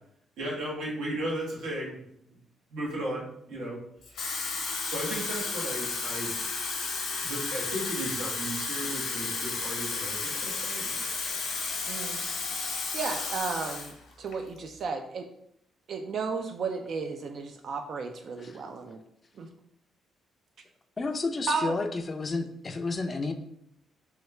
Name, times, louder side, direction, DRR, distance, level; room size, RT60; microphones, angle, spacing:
voice 1, 0.4-2.0 2.3-2.4 2.7-3.8 4.8-6.3 7.2-11.3, right 1 dB, 90° right, -4 dB, 1.1 m, -35 dB
Water tap faucet / Fill (with liquid), 4.0-13.9 14.3-14.6, left 4 dB, 70° left, 0.7 m, -33 dB
voice 2, 11.9-12.2 12.9-15.3 15.9-19.0 19.4-19.5 21.5-21.7, right 4 dB, 60° right, 4 dB, 0.3 m, -33 dB
voice 3, 21.0-23.3, left 3 dB, 30° left, 6 dB, 0.4 m, -31 dB
3.0 x 2.3 x 3.1 m, 0.73 s
cardioid pair, 90°, 0 cm